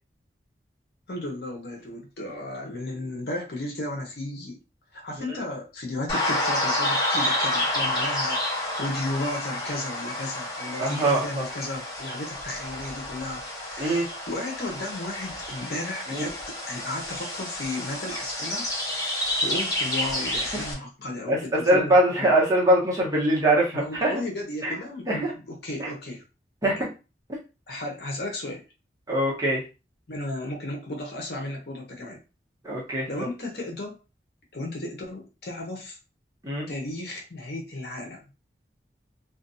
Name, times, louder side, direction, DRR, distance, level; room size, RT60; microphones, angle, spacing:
voice 1, 1.1-4.6 4.9-18.7 19.4-22.3 23.7-26.2 26.6-26.7 27.7-28.6 30.1-32.2 33.1-34.0 34.5-36.0 36.7-38.2, left 1 dB, 65° left, 0 dB, 0.8 m, -34 dB
sound 1, 6.1-20.7, left 1 dB, 20° left, 0.7 m, -29 dB
voice 2, 10.8-11.5 13.8-14.1 16.1-16.3 20.5-20.6 21.3-24.1 24.6-24.7 25.1-25.3 25.8-25.9 26.6-26.9 27.3-27.4 29.1-29.6 32.6-33.3 36.4-36.7, right 1 dB, 20° right, -4 dB, 0.8 m, -23 dB
2.5 x 2.2 x 2.5 m, 0.30 s
head